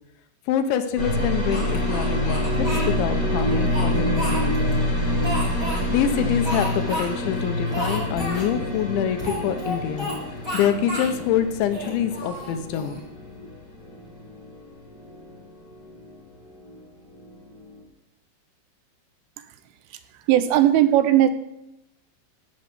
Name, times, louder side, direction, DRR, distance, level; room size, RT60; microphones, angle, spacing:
voice 1, 0.5-4.1 4.4-4.5 5.6-10.1 10.5-13.0 13.4-13.5, left 9 dB, 80° left, 8 dB, 3.2 m, -25 dB
sound 1, 1.0-16.8 17.0-17.8, left 1 dB, 25° left, 3.6 m, -27 dB
Speech, 1.5-2.9 3.5-4.8 5.2-5.8 6.4-7.1 7.3-7.4 7.7-8.5 9.2-10.2 10.4-11.1 11.6-13.0, equal, 5° right, 3.0 m, -31 dB
sound 2, 3.9-11.1, left 5 dB, 55° left, 2.5 m, -40 dB
voice 2, 20.3-21.3, right 12 dB, 90° right, 12 dB, 3.3 m, -18 dB
16.0 x 6.2 x 7.9 m, 0.86 s
omnidirectional pair, 5.5 m